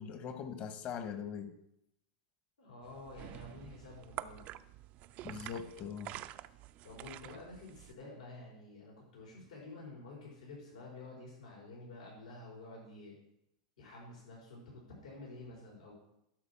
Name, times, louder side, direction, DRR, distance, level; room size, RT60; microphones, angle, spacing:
voice 1, 0.0-1.5 5.2-6.2, left 7 dB, 40° left, 9 dB, 1.3 m, -41 dB
voice 2, 2.6-4.4 6.8-13.2 13.8-15.9, left 2 dB, 85° left, -3 dB, 4.4 m, -50 dB
sound 1, 2.8-7.9, right 14 dB, 40° right, 0.4 m, -48 dB
11.0 x 5.2 x 7.2 m, 0.80 s
hypercardioid pair, 125°, 4 cm